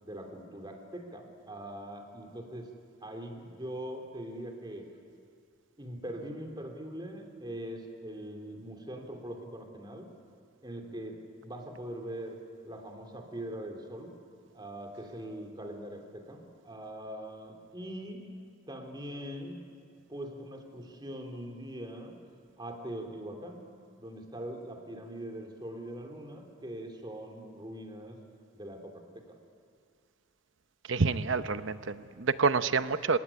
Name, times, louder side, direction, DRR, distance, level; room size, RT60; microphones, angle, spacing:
voice 1, 0.0-2.7 3.0-4.9 5.8-10.1 10.6-12.4 12.6-14.1 14.5-18.2 18.7-19.6 20.1-22.2 22.6-23.6 24.0-28.2 28.5-29.4, right 1 dB, 20° right, 4 dB, 2.8 m, -42 dB
voice 2, 30.9-33.2, right 4 dB, 65° right, 12 dB, 0.8 m, -28 dB
27.0 x 16.0 x 9.9 m, 2.3 s
head